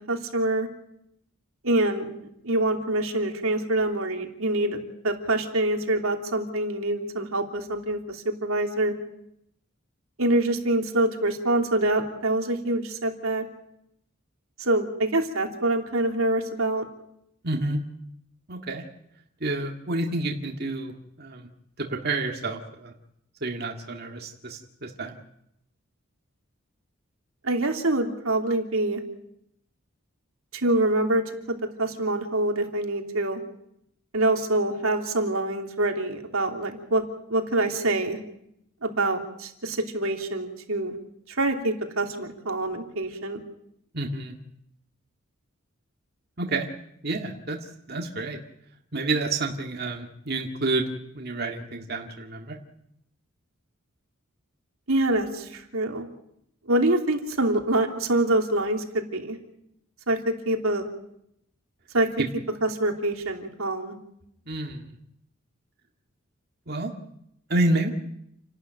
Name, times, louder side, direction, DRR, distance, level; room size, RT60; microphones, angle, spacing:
voice 1, 0.1-0.7 1.6-2.2 2.4-8.9 10.2-13.4 14.6-16.8 27.4-29.0 30.5-33.4 34.1-37.0 37.3-38.2 38.8-40.9 41.3-43.4 54.9-56.1 56.7-59.4 60.1-60.9 61.9-62.1 62.6-63.9, right 2 dB, 85° right, 3 dB, 3.1 m, -25 dB
voice 2, 17.4-17.8 18.5-18.8 19.4-20.9 21.2-21.5 21.8-22.9 23.4-25.1 43.9-44.3 46.4-46.7 47.0-47.6 47.9-48.4 48.9-50.9 51.1-52.6 64.5-64.9 66.7-66.9 67.5-67.9, right 2 dB, 50° right, 2 dB, 1.9 m, -29 dB
29.0 x 12.0 x 9.2 m, 0.77 s
head